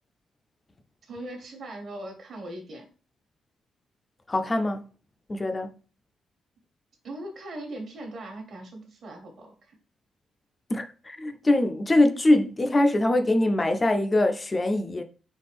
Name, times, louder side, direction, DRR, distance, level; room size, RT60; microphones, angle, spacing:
voice 1, 1.0-2.9 7.0-9.8, right 1 dB, 50° right, 1.4 m, -40 dB
voice 2, 4.3-4.9 5.3-5.7 10.7-15.0, left 1 dB, 15° left, 0.4 m, -23 dB
4.2 x 3.2 x 3.4 m
cardioid pair, 165°, 0 cm